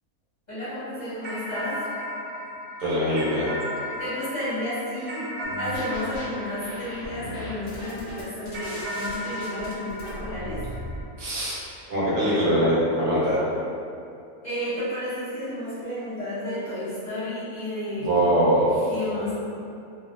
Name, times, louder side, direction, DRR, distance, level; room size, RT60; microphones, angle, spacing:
voice 1, 0.5-1.8 4.0-5.2 5.6-10.6 14.4-18.4 18.9-19.3, left 1 dB, 35° left, -15 dB, 0.9 m, -32 dB
sound 1, 1.2-7.8 8.5-11.3, equal, 90° right, 0.5 m, -35 dB
voice 2, 2.8-3.5 11.2-11.6 11.9-13.4 18.0-18.9, equal, 70° right, -9 dB, 1.3 m, -22 dB
sound 2, 5.4-6.3 6.6-11.0, equal, 80° left, 0.4 m, -38 dB
2.6 x 2.4 x 2.6 m, 2.5 s
omnidirectional pair, 1.6 m